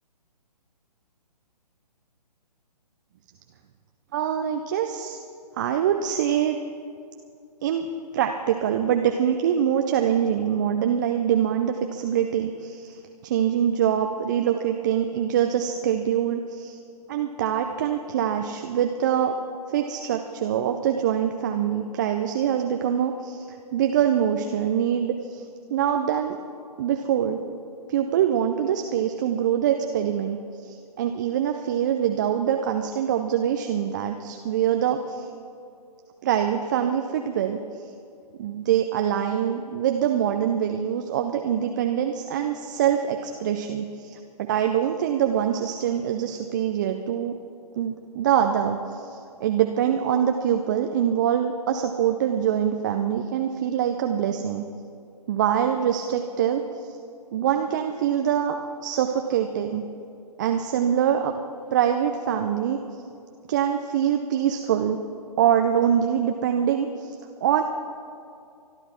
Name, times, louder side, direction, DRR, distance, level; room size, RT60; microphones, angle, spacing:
voice 1, 4.1-5.2 5.6-6.6 7.6-16.8 17.1-25.4 25.7-26.4 26.8-27.4 27.9-35.3 36.2-37.9 38.4-47.4 47.8-54.6 55.3-57.0 57.3-59.8 60.4-61.3 61.7-62.8 63.5-65.0 65.4-67.2 67.4-67.6, right 9 dB, 25° right, 5 dB, 0.6 m, -24 dB
24.5 x 11.0 x 4.4 m, 2.4 s
figure-of-eight pair, 135°, 21 cm